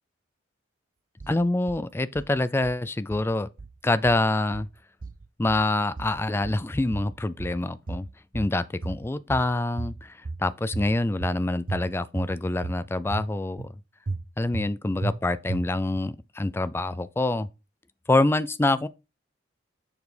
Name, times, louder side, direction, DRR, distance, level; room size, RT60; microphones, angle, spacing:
sound 1, 1.2-1.8 2.1-2.8 3.1-3.8 4.1-4.7 5.0-5.7 6.0-6.7 6.9-7.6 7.9-8.6 8.8-9.5 9.8-10.4 10.7-11.4 11.7-12.3 12.6-13.3 13.6-13.7 14.1-14.7 15.0-15.1 15.5-16.0, right 3 dB, 45° right, 0.5 m, -34 dB
voice 1, 1.3-3.5 3.8-4.7 5.4-8.1 8.3-13.7 14.4-17.5 18.1-18.9, left 2 dB, 10° left, 0.3 m, -26 dB
7.0 x 4.1 x 5.0 m
head